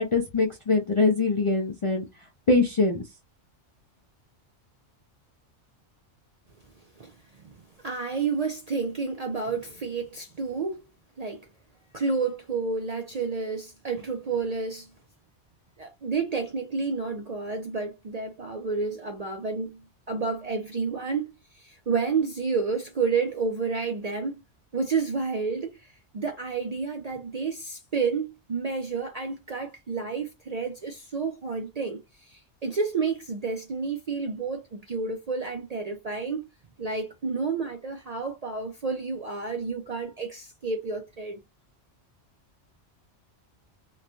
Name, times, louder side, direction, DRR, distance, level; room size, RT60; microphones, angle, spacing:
voice 1, 0.0-2.0 2.5-3.0, left 3 dB, 50° left, 0.3 m, -23 dB
voice 2, 7.0-10.8 11.2-11.5 11.9-14.9 15.8-24.4 24.7-36.5 36.8-41.4, right 4 dB, 55° right, 0.4 m, -30 dB
3.0 x 2.2 x 2.6 m
omnidirectional pair, 1.2 m